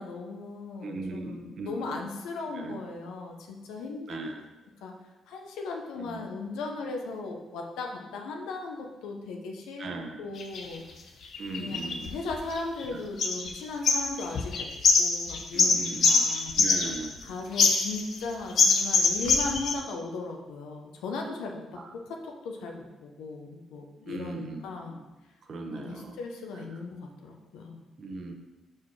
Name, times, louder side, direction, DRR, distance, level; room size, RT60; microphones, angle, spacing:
voice 1, 0.0-4.3 4.8-4.9 5.3-10.8 11.6-14.7 15.0-16.6 17.2-21.8 22.1-24.9 25.7-27.8, left 3 dB, 90° left, 1 dB, 0.9 m, -37 dB
voice 2, 0.8-1.9 2.6-2.8 4.1-4.4 6.0-6.2 9.8-10.2 11.4-12.1 15.5-16.2 16.6-17.1 21.8-21.9 24.1-24.6 24.9-25.0 25.5-26.2 28.0-28.3, right 3 dB, 55° right, 3 dB, 1.0 m, -38 dB
sound 1, 10.4-10.7 11.3-12.9 13.2-13.6 13.8-17.2 17.6-18.2 18.6-19.7, left 4 dB, 65° left, 0.8 m, -23 dB
4.9 x 4.6 x 5.7 m, 1.1 s
cardioid pair, 90°, 0 cm